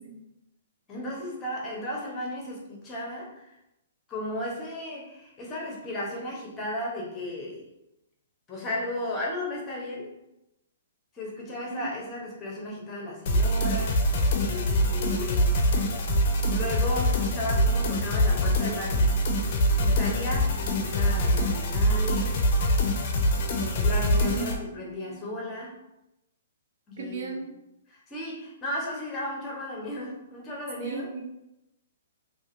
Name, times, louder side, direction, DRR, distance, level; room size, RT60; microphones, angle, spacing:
voice 1, 0.9-3.5 4.1-7.7 8.5-10.1 11.1-15.6 16.5-19.1 19.8-22.4 23.4-25.8 26.9-27.4 27.9-31.1, left 1 dB, 20° left, -3 dB, 0.8 m, -35 dB
sound 1, 13.3-24.6, equal, 50° left, 0.5 m, -24 dB
voice 2, 24.2-25.1 27.0-27.6 30.8-31.2, right 4 dB, 65° right, 2 dB, 0.6 m, -36 dB
2.7 x 2.5 x 2.5 m, 0.91 s
hypercardioid pair, 130°, 0 cm